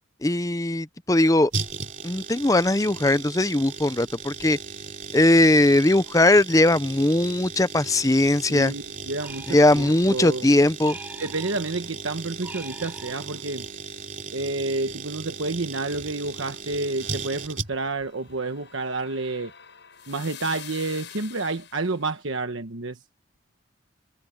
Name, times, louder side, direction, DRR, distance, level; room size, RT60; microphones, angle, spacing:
voice 1, 0.2-1.5 2.0-4.6 5.1-8.7 9.5-11.0, left 1 dB, 15° left, 0.6 m, -19 dB
sound 1, 1.5-18.0 18.3-18.4, right 5 dB, 40° right, 3.2 m, -37 dB
voice 2, 8.5-10.5 11.2-13.7 14.3-19.5 20.1-23.0, right 3 dB, 80° right, 1.2 m, -29 dB
sound 2, 9.2-10.2 10.8-11.9 12.4-13.6, right 2 dB, 10° right, 6.3 m, -43 dB
sound 3, 17.5-22.1, left 10 dB, 60° left, 7.2 m, -46 dB
head